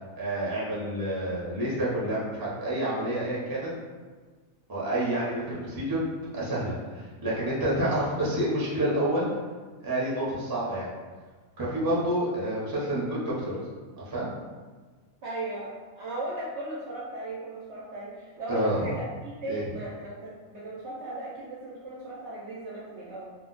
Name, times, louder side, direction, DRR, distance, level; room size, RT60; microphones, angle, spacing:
voice 1, 0.2-3.7 4.7-6.0 6.3-6.7 7.2-9.3 9.8-10.9 11.6-13.5 14.1-14.3 18.5-18.8 19.5-19.6, right 1 dB, 25° right, -7 dB, 0.5 m, -28 dB
voice 2, 15.2-23.3, right 2 dB, 65° right, -6 dB, 0.8 m, -37 dB
2.5 x 2.2 x 3.8 m, 1.4 s
omnidirectional pair, 1.4 m